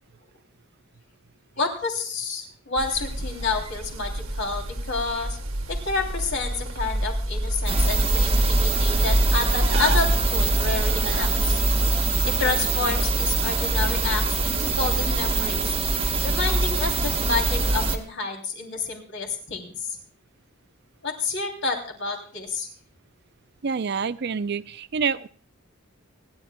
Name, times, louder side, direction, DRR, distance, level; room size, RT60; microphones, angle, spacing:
voice 1, 1.6-5.4 5.7-11.6 12.2-15.6 16.2-19.7 21.0-22.7, left 4 dB, 60° left, 1 dB, 3.0 m, -29 dB
sound 1, 2.8-11.3, right 1 dB, 80° right, 1.9 m, -27 dB
sound 2, 7.7-18.0, right 2 dB, 25° right, 1.2 m, -23 dB
voice 2, 23.6-25.3, right 6 dB, 50° right, 15 dB, 0.5 m, -27 dB
27.5 x 10.5 x 2.2 m, 0.43 s
head